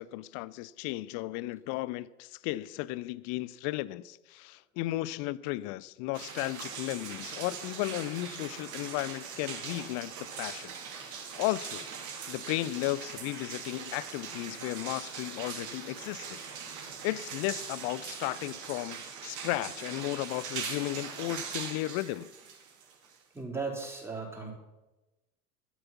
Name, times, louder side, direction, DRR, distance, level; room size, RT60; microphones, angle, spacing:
voice 1, 0.0-10.7 11.0-11.8 12.3-16.4 16.7-16.8 17.0-22.3, left 17 dB, 35° left, 0.5 m, -35 dB
sound 1, 6.1-23.4, right 6 dB, 40° right, 2.9 m, -41 dB
voice 2, 23.3-24.5, right 4 dB, 5° right, 4.0 m, -36 dB
12.0 x 11.5 x 5.9 m
figure-of-eight pair, 85°, 47 cm